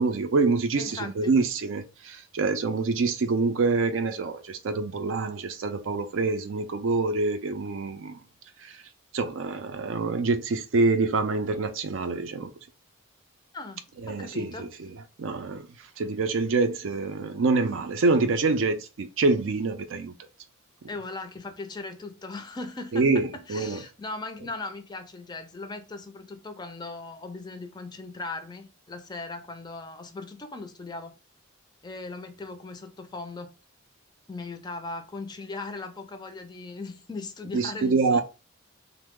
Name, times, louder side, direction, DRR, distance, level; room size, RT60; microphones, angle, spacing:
voice 1, 0.0-8.2 8.6-8.8 9.1-12.5 14.0-15.6 16.0-20.1 22.9-23.8 37.5-38.2, right 3 dB, 70° right, 0.4 m, -26 dB
voice 2, 0.8-1.4 13.5-14.7 18.1-18.2 20.9-31.1 31.8-33.5 34.3-38.2, left 3 dB, 20° left, 0.4 m, -38 dB
3.0 x 2.0 x 3.5 m
head